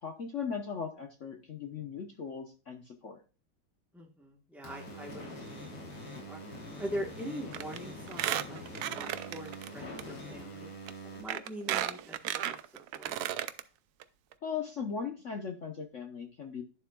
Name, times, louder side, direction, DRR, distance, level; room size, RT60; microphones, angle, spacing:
voice 1, 0.0-3.2 14.4-16.6, left 6 dB, 55° left, 4 dB, 0.9 m, -38 dB
voice 2, 3.9-5.8 6.2-10.7 11.0-12.6 12.9-13.1, equal, ahead, 0 dB, 0.5 m, -43 dB
sound 1, 4.6-11.2, equal, 90° left, 4.0 m, -44 dB
Squeak, 7.5-7.8 8.1-9.7 10.0-10.1 10.9-11.0 11.3-13.6 14.0-14.1 14.3-14.4, right 11 dB, 80° right, 0.8 m, -34 dB
11.0 x 7.0 x 2.3 m, 0.36 s
omnidirectional pair, 2.3 m